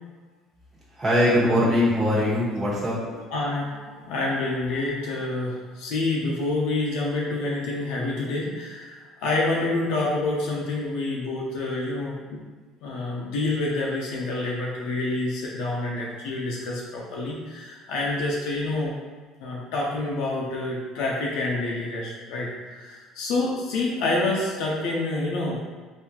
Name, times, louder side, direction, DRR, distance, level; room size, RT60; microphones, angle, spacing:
voice 1, 1.0-3.0, left 1 dB, 25° right, -7 dB, 1.3 m, -21 dB
voice 2, 3.1-12.4 12.8-19.0 19.4-25.6, left 2 dB, 80° left, -4 dB, 0.6 m, -28 dB
3.9 x 2.6 x 2.9 m, 1.4 s
cardioid pair, 110°, 0 cm